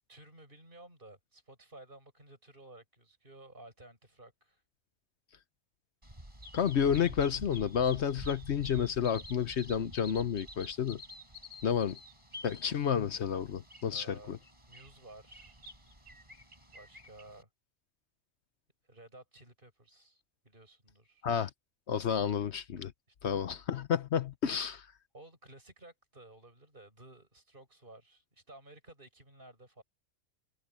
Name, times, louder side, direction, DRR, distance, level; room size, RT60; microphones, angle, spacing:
voice 1, 0.1-4.6 13.8-14.4 14.7-15.6 16.7-17.5 18.8-21.3 23.2-23.3 25.1-29.8, right 2 dB, 45° right, 8.4 m, -54 dB
Bird vocalization bird call bird song, 6.0-17.4, left 1 dB, 25° right, 5.7 m, -49 dB
voice 2, 6.5-11.0 11.6-12.0 12.4-14.4 21.2-21.5 21.9-22.9 23.2-24.9, left 8 dB, 65° left, 1.1 m, -30 dB
omnidirectional pair, 1.3 m